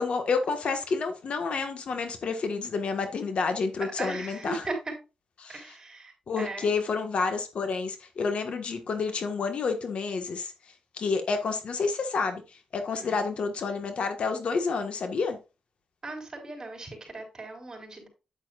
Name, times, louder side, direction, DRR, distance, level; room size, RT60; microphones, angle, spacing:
voice 1, 0.0-4.7 5.4-5.6 6.3-10.5 10.9-12.4 12.7-15.4, left 4 dB, 65° left, 1.4 m, -29 dB
voice 2, 4.0-4.9 5.5-6.7 12.9-13.2 16.0-18.1, right 2 dB, 30° right, 4.3 m, -38 dB
9.0 x 8.8 x 2.4 m
cardioid pair, 90°, 2 cm